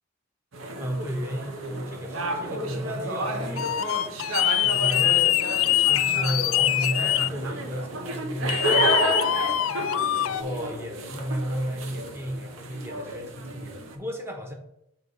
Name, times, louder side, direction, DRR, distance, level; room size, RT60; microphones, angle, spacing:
sound 1, 0.5-14.0, right 1 dB, 70° right, 1.0 m, -31 dB
voice 1, 0.8-3.8 4.6-5.4 5.8-9.5 10.2-14.5, equal, 10° right, 1 dB, 1.0 m, -33 dB
sound 2, 3.6-7.3 8.5-10.4, left 13 dB, 70° left, 0.3 m, -23 dB
6.5 x 3.2 x 5.5 m, 0.81 s
head